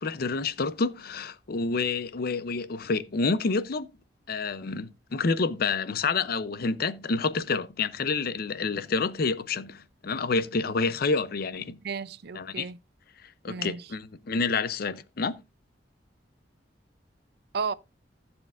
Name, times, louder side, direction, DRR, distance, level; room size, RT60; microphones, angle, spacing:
voice 1, 0.0-3.9 4.3-11.8 12.3-12.7 13.4-15.4, left 4 dB, 55° left, 0.6 m, -28 dB
voice 2, 11.8-12.8 13.5-13.9 17.5-17.7, right 5 dB, 60° right, 0.5 m, -33 dB
15.5 x 7.0 x 2.5 m
head